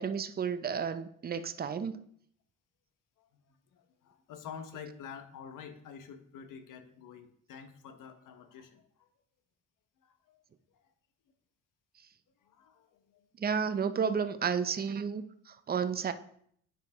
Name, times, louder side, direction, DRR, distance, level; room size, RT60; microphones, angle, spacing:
voice 1, 0.0-2.0 13.4-16.1, right 6 dB, 30° right, 11 dB, 0.6 m, -32 dB
voice 2, 3.2-9.1 10.0-10.4 12.4-13.3, left 7 dB, 65° left, 7 dB, 1.2 m, -48 dB
9.1 x 4.6 x 3.6 m, 0.65 s
supercardioid pair, 75°, 34 cm